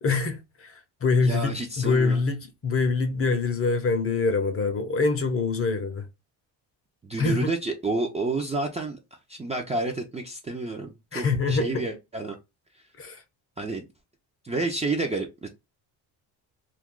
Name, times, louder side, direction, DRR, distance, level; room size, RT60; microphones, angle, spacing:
voice 1, 0.0-6.1 7.2-7.5 11.1-11.9 13.0-13.2, left 4 dB, 30° left, 0.7 m, -25 dB
voice 2, 1.2-2.2 7.0-9.0 9.3-12.4 13.6-13.8 14.4-15.5, right 3 dB, 15° right, 0.5 m, -30 dB
2.4 x 2.3 x 3.6 m
cardioid pair, 100°, 44 cm